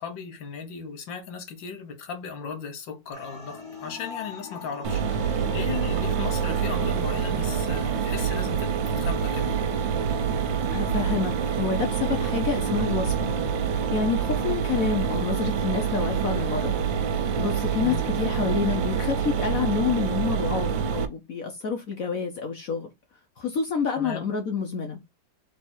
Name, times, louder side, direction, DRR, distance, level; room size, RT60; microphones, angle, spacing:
voice 1, 0.0-9.5 17.8-18.0 24.0-24.3, left 6 dB, 80° left, 1.8 m, -36 dB
sound 1, 3.1-13.2, left 4 dB, 10° left, 2.0 m, -45 dB
Mechanisms, 4.8-21.1, right 7 dB, 85° right, 1.4 m, -26 dB
voice 2, 10.7-13.3 13.7-16.7 17.4-22.9 23.4-25.0, left 5 dB, 55° left, 1.1 m, -28 dB
3.5 x 3.2 x 4.3 m
omnidirectional pair, 2.0 m